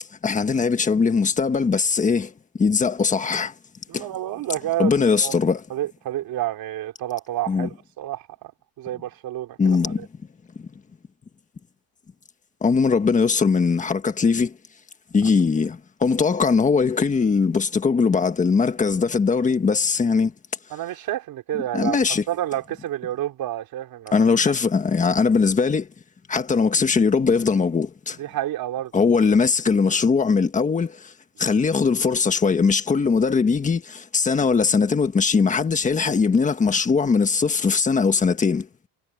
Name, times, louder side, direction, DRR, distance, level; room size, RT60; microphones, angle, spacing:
voice 1, 0.2-2.3 2.6-3.5 3.9-4.0 4.8-5.6 7.5-7.7 9.6-10.1 10.6-10.7 12.6-14.5 15.1-20.3 21.7-22.2 24.1-25.9 26.3-28.2 28.9-31.1 31.4-38.7, left 5 dB, 15° left, 1.4 m, -20 dB
voice 2, 3.9-4.9 5.2-5.4 5.7-8.5 8.8-10.1 20.7-24.2 28.2-28.9, right 13 dB, 50° right, 3.8 m, -29 dB
cardioid pair, 175°, 45 cm